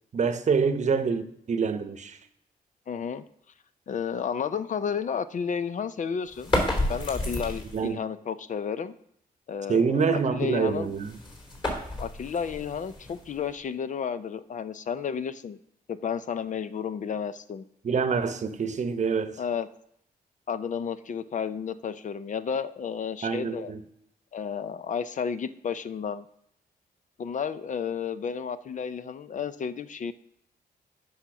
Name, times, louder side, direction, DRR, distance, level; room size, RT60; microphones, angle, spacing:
voice 1, 0.1-2.2 7.7-8.0 9.7-11.2 17.8-19.4 23.2-23.8, right 5 dB, 50° right, 0.8 m, -26 dB
voice 2, 2.9-3.2 3.9-6.6 6.9-8.9 9.5-10.9 12.0-15.6 15.9-17.6 19.4-19.7 20.5-23.7 24.3-26.3 27.2-30.1, left 7 dB, 55° left, 0.5 m, -32 dB
sound 1, 6.3-7.9 10.6-13.6, left 1 dB, 30° left, 3.3 m, -31 dB
8.6 x 5.7 x 5.9 m
cardioid pair, 90°, 16 cm